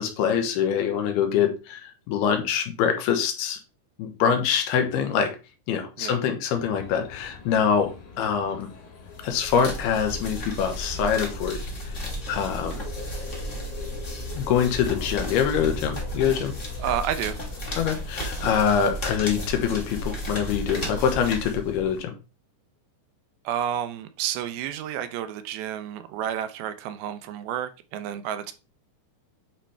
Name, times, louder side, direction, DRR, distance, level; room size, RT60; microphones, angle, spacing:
voice 1, 0.0-3.6 4.0-5.3 5.7-7.9 8.2-8.7 9.2-11.6 11.8-12.8 14.3-16.5 17.8-22.1, left 7 dB, 85° left, 3.0 m, -24 dB
sound 1, 6.8-21.2, left 4 dB, 65° left, 3.5 m, -44 dB
sound 2, 9.1-22.0, equal, 35° left, 1.2 m, -34 dB
voice 2, 16.8-17.4 23.5-28.5, right 10 dB, 80° right, 2.5 m, -30 dB
8.9 x 4.3 x 3.3 m
omnidirectional pair, 4.5 m